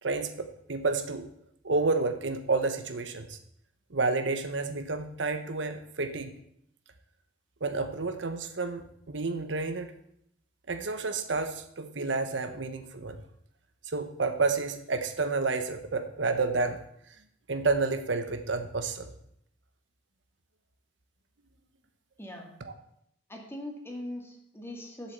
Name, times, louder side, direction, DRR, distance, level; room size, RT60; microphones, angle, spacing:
voice 1, 0.0-1.3 1.6-3.4 3.9-6.3 7.6-9.9 10.7-13.2 13.8-16.8 17.5-19.1 22.6-22.7, right 3 dB, 75° right, 8 dB, 1.0 m, -30 dB
voice 2, 22.2-22.5 23.3-25.1, left 1 dB, 15° left, 1 dB, 2.0 m, -41 dB
8.3 x 7.4 x 7.3 m, 0.73 s
head